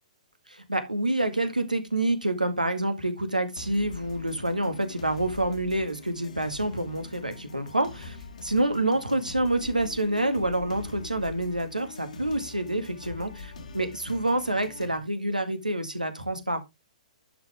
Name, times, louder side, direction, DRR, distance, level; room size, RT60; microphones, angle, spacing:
voice 1, 0.5-16.6, right 1 dB, 90° right, 1.9 m, -27 dB
sound 1, 3.6-15.0, left 4 dB, 65° left, 2.5 m, -43 dB
11.0 x 5.6 x 3.3 m
figure-of-eight pair, 120°, 4 cm